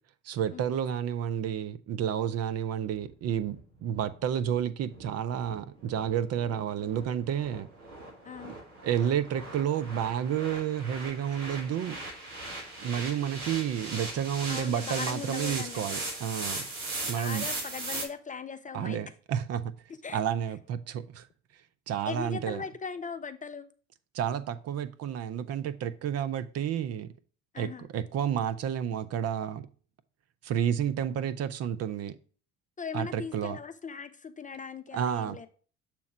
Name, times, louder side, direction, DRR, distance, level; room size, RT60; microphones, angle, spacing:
voice 1, 0.2-7.7 8.8-12.0 12.8-16.7 17.1-17.5 18.7-19.7 20.1-21.3 21.9-22.6 24.1-27.1 27.6-29.7 30.4-32.2 32.9-33.6 34.9-35.5, right 9 dB, 45° right, 0.6 m, -30 dB
sound 1, 3.0-18.1, right 2 dB, 80° right, 1.4 m, -39 dB
voice 2, 14.5-15.8 17.1-19.0 20.0-20.2 22.1-23.7 27.5-27.9 32.8-35.5, left 6 dB, 20° left, 0.4 m, -39 dB
7.0 x 3.0 x 4.9 m
hypercardioid pair, 60°, 37 cm